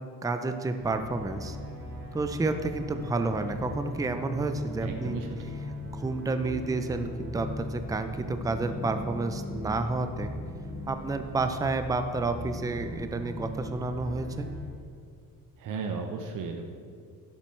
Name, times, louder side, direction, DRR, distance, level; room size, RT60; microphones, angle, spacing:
voice 1, 0.2-1.6 2.1-5.2 5.9-10.3 10.9-14.5, right 3 dB, 10° right, 8 dB, 0.5 m, -30 dB
sound 1, 0.8-14.7, left 1 dB, 85° right, 2.2 m, -39 dB
voice 2, 4.8-5.5 15.6-16.7, right 4 dB, 60° right, 4 dB, 0.9 m, -35 dB
11.5 x 7.3 x 3.3 m, 2.2 s
cardioid pair, 110°, 36 cm